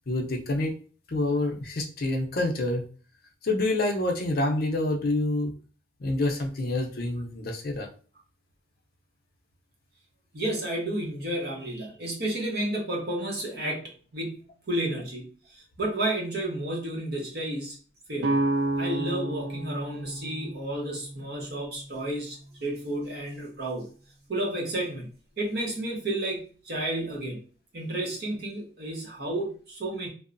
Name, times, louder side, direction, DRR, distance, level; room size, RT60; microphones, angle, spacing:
voice 1, 0.1-0.7 1.1-2.8 3.4-5.5 6.0-7.9, left 2 dB, 55° left, 2 dB, 0.5 m, -27 dB
voice 2, 10.3-15.3 15.5-17.8 18.1-18.4 18.8-23.9 24.3-25.1 25.4-27.4 27.7-30.1, right 1 dB, 60° right, -1 dB, 0.8 m, -31 dB
sound 1, 18.2-22.0, right 2 dB, 80° right, 0.5 m, -30 dB
2.9 x 2.0 x 2.5 m, 0.39 s
head